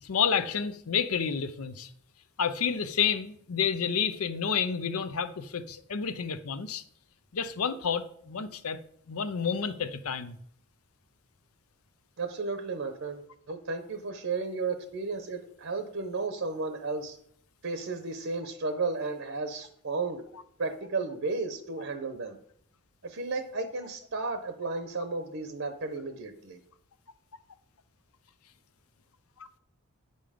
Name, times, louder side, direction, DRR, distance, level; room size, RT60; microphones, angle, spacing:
voice 1, 0.0-1.9 2.4-6.8 7.3-8.8 9.1-10.4, left 6 dB, 80° left, 0.6 m, -30 dB
voice 2, 12.2-13.2 13.5-17.2 17.6-20.2 20.6-22.4 23.0-26.6, right 3 dB, 60° right, 0.8 m, -33 dB
8.8 x 5.4 x 5.0 m
head